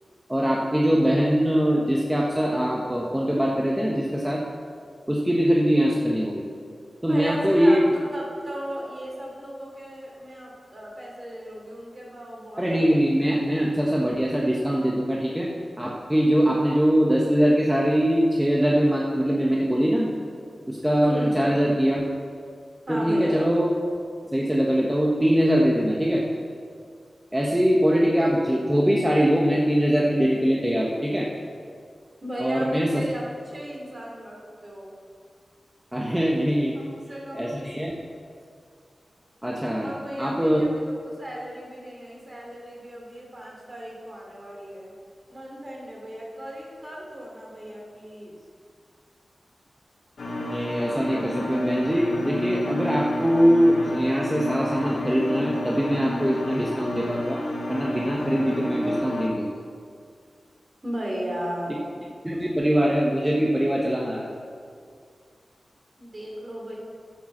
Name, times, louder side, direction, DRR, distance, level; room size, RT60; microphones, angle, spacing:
voice 1, 0.3-4.4 5.1-6.4 7.0-7.8 12.6-15.5 15.8-20.1 20.7-22.0 22.9-23.7 24.3-26.2 27.3-31.3 32.4-32.9 35.9-36.7 37.3-38.0 39.4-39.9 40.2-40.6 50.4-57.4 57.7-59.5 62.2-64.3, equal, 10° right, -3 dB, 1.2 m, -22 dB
voice 2, 7.1-7.9 8.1-12.9 21.0-21.3 22.9-23.5 32.2-34.9 36.7-37.7 39.8-44.9 45.3-48.4 60.8-62.1 66.0-66.7, equal, 35° right, -2 dB, 3.5 m, -35 dB
sound 1, 50.2-59.3, left 1 dB, 70° left, 1.5 m, -30 dB
10.5 x 7.8 x 7.2 m, 2.2 s
wide cardioid pair, 85°, 0 cm